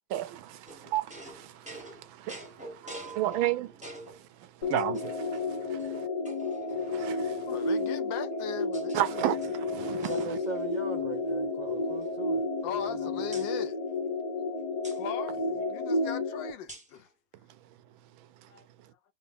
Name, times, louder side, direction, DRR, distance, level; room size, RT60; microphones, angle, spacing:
voice 1, 0.1-6.1 6.8-7.5 8.9-10.4 18.2-18.5, right 13 dB, 80° right, 1.4 m, -34 dB
sound 1, 0.7-4.2 4.8-5.4 5.8-5.9 6.2-7.3 8.1-9.0 9.3-10.9 11.1-11.3 11.6-12.9 13.3-13.5 14.8-15.0 16.7-17.0, right 1 dB, 5° right, 0.9 m, -47 dB
sound 2, 4.6-16.5, left 2 dB, 90° left, 0.4 m, -31 dB
voice 2, 7.5-9.2 12.6-13.8 14.9-17.1 18.5-18.7, left 8 dB, 75° left, 1.2 m, -39 dB
voice 3, 9.9-13.3, right 3 dB, 50° right, 0.5 m, -40 dB
4.0 x 2.6 x 3.5 m
omnidirectional pair, 2.2 m